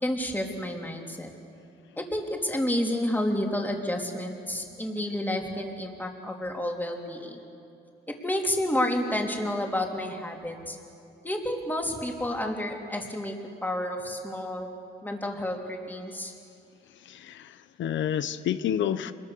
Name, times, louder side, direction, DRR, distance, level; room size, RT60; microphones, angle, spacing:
voice 1, 0.0-1.3 2.0-7.4 8.2-10.8 11.2-13.3 13.6-14.7 15.0-16.3, left 1 dB, 10° left, 1 dB, 3.5 m, -30 dB
voice 2, 17.0-19.1, left 9 dB, 70° left, 13 dB, 0.9 m, -29 dB
26.5 x 21.0 x 6.8 m, 2.7 s
cardioid pair, 90°, 20 cm